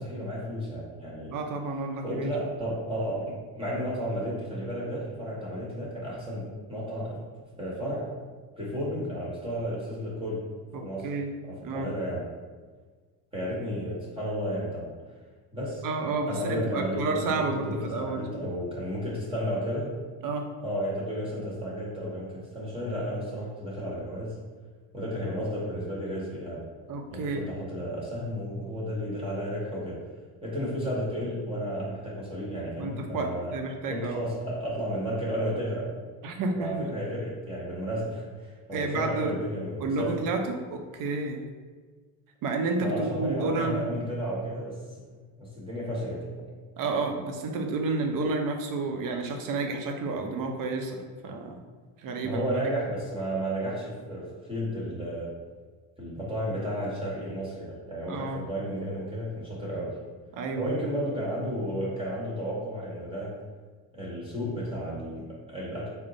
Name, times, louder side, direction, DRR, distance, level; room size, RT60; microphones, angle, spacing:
voice 1, 0.0-1.3 2.0-7.2 7.6-8.1 8.6-10.5 10.8-11.1 11.4-12.3 13.3-15.0 15.5-15.9 16.3-19.9 20.6-24.4 24.9-26.6 27.1-30.0 30.4-33.5 33.9-35.9 36.5-40.1 42.8-44.8 45.1-46.5 52.2-55.3 56.0-60.0 60.6-63.3 63.9-65.9, equal, 10° right, -6 dB, 1.2 m, -33 dB
voice 2, 1.3-2.3 10.7-11.3 11.6-11.9 15.8-18.5 20.2-20.5 26.9-27.4 32.8-34.2 36.2-36.9 38.7-39.3 39.8-41.4 42.4-44.1 46.8-51.6 52.0-52.6 58.1-58.4 60.3-61.0, right 3 dB, 45° right, 4 dB, 0.7 m, -30 dB
3.6 x 2.1 x 3.9 m, 1.5 s
supercardioid pair, 85°, 45 cm